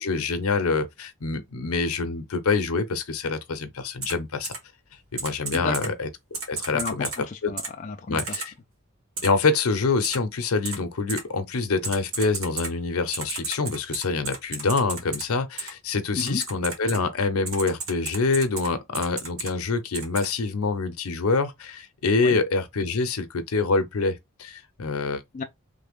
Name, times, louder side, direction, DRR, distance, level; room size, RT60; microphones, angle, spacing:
voice 1, 0.0-4.5 5.1-6.1 6.5-7.1 7.4-7.5 8.1-8.5 9.2-25.2, left 4 dB, 80° left, 0.7 m, -26 dB
Typing, 4.0-4.1 4.4-4.6 5.2-5.9 6.3-7.2 7.6-7.7 8.2-8.5 9.2-9.3 10.0-10.2 10.6-10.8 11.1-11.2 11.8-12.7 13.1-15.2 15.6-15.7 16.2-17.0 17.5-18.7 18.9-19.5 19.9-20.3, right 4 dB, 70° right, 1.3 m, -32 dB
voice 2, 5.5-5.9 6.7-8.4 16.2-16.4 22.2-22.4 25.3-25.4, left 4 dB, 35° left, 0.3 m, -32 dB
3.3 x 2.1 x 3.5 m
head